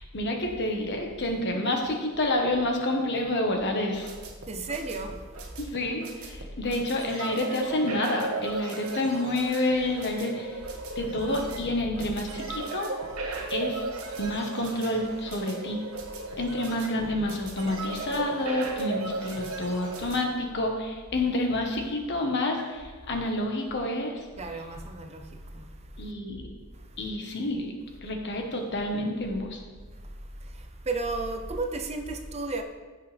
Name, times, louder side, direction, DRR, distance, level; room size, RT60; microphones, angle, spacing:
voice 1, 0.0-4.1 5.6-10.6 10.9-12.9 13.5-13.8 14.2-15.8 16.3-24.2 26.0-26.4 27.0-27.8 28.0-29.6, left 1 dB, 55° left, 1.4 m, -29 dB
sound 1, 3.8-20.2, right 3 dB, 85° right, 1.5 m, -36 dB
voice 2, 4.4-5.6 11.0-12.1 13.4-13.5 16.3-16.4 17.0-17.3 24.4-26.1 26.7-27.1 29.9-32.6, right 3 dB, 30° right, 0.7 m, -35 dB
15.5 x 5.8 x 3.5 m
head